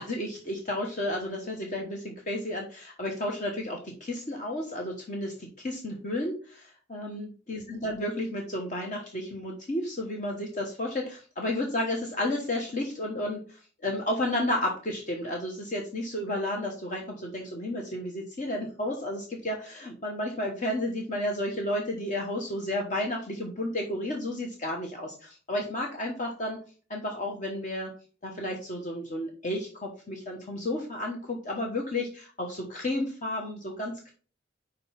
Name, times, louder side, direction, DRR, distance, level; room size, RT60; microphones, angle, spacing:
voice 1, 0.0-26.6 26.9-27.9 28.2-34.1, left 1 dB, 40° left, 1 dB, 1.2 m, -32 dB
5.2 x 5.2 x 5.8 m, 0.39 s
head